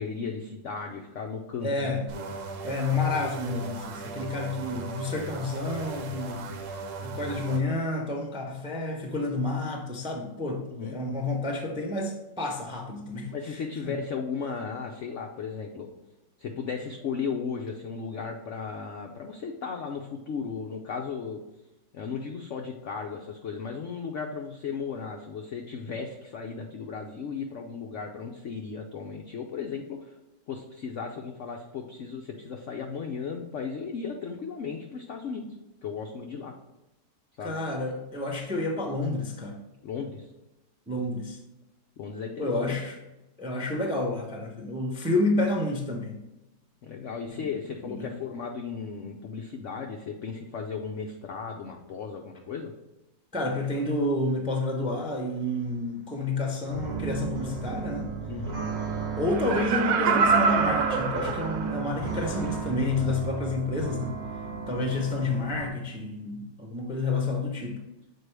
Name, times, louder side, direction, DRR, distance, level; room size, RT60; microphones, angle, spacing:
voice 1, 0.0-2.3 10.6-11.0 13.3-15.9 16.4-21.4 21.9-30.1 30.5-35.5 35.8-36.5 37.4-37.6 39.8-40.3 42.0-42.8 46.8-52.7 58.3-58.6, left 5 dB, 80° left, 3 dB, 0.6 m, -35 dB
voice 2, 1.6-2.1 2.6-6.5 7.0-14.0 37.4-39.6 40.9-41.4 42.4-43.0 43.4-46.2 47.4-47.5 47.8-48.1 53.3-58.1 59.2-64.2 64.7-67.8, left 2 dB, 10° right, 1 dB, 0.3 m, -29 dB
sound 1, 2.1-7.6, right 4 dB, 65° right, 1.2 m, -38 dB
sound 2, 56.6-65.7, right 5 dB, 40° right, 0.7 m, -35 dB
Laughter, 59.3-62.0 62.4-62.5, right 5 dB, 85° right, 1.3 m, -25 dB
6.6 x 4.3 x 3.3 m, 0.99 s
omnidirectional pair, 2.0 m